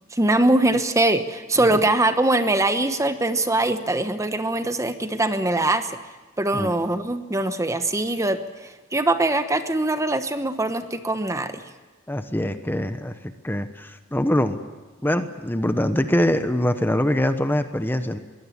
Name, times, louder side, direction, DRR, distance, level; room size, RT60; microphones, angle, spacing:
voice 1, 0.1-6.0 6.4-8.4 8.9-11.6, right 2 dB, 15° right, 9 dB, 1.0 m, -22 dB
voice 2, 12.1-13.1 13.4-14.6 15.0-18.2, left 1 dB, 10° left, 9 dB, 1.0 m, -23 dB
22.5 x 18.0 x 9.8 m, 1.2 s
head